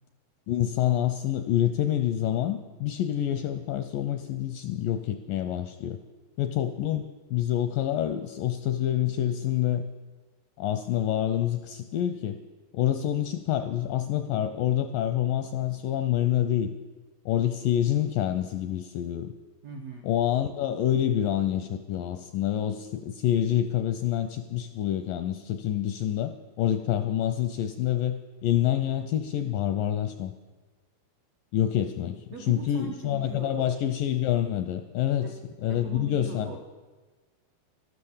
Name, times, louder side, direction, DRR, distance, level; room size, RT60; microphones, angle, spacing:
voice 1, 0.5-6.0 6.4-9.9 10.6-12.4 12.7-16.7 17.3-19.3 20.0-30.3 31.5-35.3 35.6-36.5, left 11 dB, 85° left, 9 dB, 1.9 m, -27 dB
voice 2, 19.6-20.1 32.3-33.7 35.2-35.3 35.6-36.6, right 4 dB, 75° right, 1 dB, 1.5 m, -40 dB
12.5 x 12.5 x 7.2 m, 1.3 s
omnidirectional pair, 4.5 m